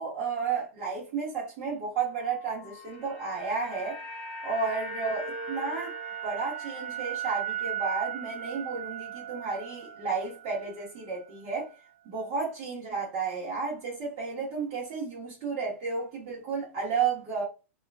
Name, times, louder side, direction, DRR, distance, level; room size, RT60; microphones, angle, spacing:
voice 1, 0.0-4.0 4.4-5.9 6.2-11.7 12.0-17.4, right 5 dB, 30° right, 1.0 m, -32 dB
sound 1, 2.6-10.9 11.1-11.3, right 6 dB, 45° left, 1.0 m, -37 dB
2.8 x 2.4 x 3.3 m
supercardioid pair, 175°, 7 cm